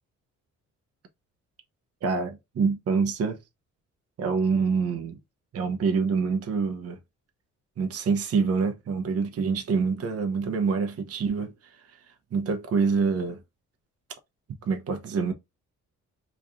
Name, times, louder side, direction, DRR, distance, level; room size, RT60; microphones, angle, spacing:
voice 1, 2.0-3.4 4.2-5.2 5.5-7.0 7.8-11.5 12.3-13.4 14.6-15.3, right 5 dB, 55° right, 0.8 m, -26 dB
3.1 x 2.5 x 3.6 m
cardioid pair, 90°, 30 cm